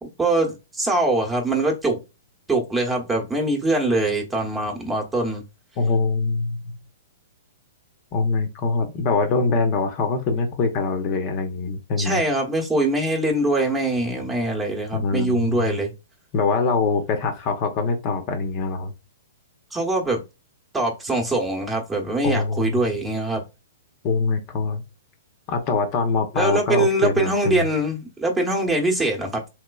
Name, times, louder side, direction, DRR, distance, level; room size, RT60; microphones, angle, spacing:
voice 1, 0.0-2.0 2.5-5.4 12.0-15.9 19.7-20.2 20.7-23.4 26.3-29.5, right 2 dB, 10° right, 0.9 m, -23 dB
voice 2, 5.8-6.6 8.1-12.2 14.9-15.7 16.3-18.9 22.2-22.8 24.0-24.8 25.5-27.6, left 4 dB, 40° left, 0.7 m, -23 dB
3.1 x 3.1 x 2.3 m
hypercardioid pair, 130°, 0 cm